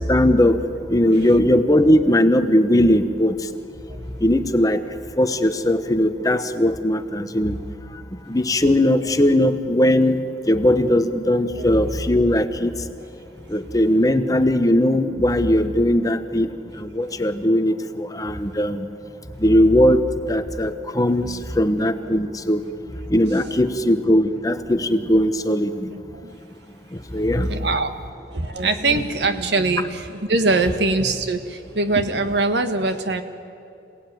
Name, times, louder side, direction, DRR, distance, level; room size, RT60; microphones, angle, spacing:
voice 1, 0.1-0.6 0.9-3.4 4.2-4.8 5.2-7.6 8.3-10.2 10.5-12.7 13.5-16.5 16.8-18.9 19.4-20.0 20.3-22.6 23.1-25.9 27.1-27.5, left 1 dB, 20° left, 9 dB, 1.0 m, -19 dB
voice 2, 25.9-26.4 27.5-27.9 28.3-33.2, right 3 dB, 80° right, 9 dB, 1.6 m, -22 dB
27.0 x 18.0 x 9.4 m, 2.7 s
head